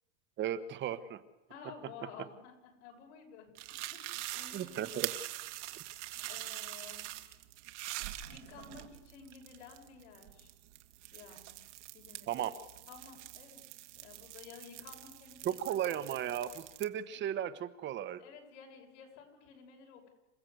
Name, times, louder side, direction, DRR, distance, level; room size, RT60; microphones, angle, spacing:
voice 1, 0.4-1.2 4.5-5.1 12.3-12.5 15.4-18.2, right 10 dB, 30° right, 13 dB, 1.3 m, -35 dB
voice 2, 1.5-4.9 6.2-7.1 8.3-10.5 11.1-11.6 11.9-12.5 12.9-13.6 13.9-16.2 18.2-20.1, left 6 dB, 70° left, 3 dB, 6.7 m, -53 dB
sound 1, 3.6-16.8, right 16 dB, 70° right, 2.0 m, -45 dB
28.0 x 15.5 x 8.1 m, 1.0 s
supercardioid pair, 140°, 37 cm